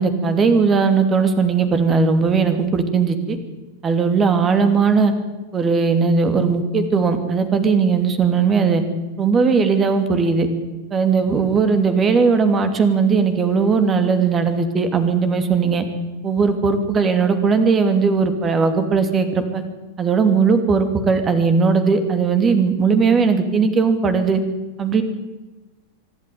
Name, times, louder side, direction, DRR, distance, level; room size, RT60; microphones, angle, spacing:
voice 1, 0.0-3.4 3.8-5.1 5.5-8.8 9.2-10.5 10.9-15.8 16.2-19.6 20.0-24.4 24.8-25.0, right 5 dB, 25° right, 8 dB, 2.8 m, -18 dB
24.5 x 12.5 x 9.5 m, 1.2 s
figure-of-eight pair, 90°, 0 cm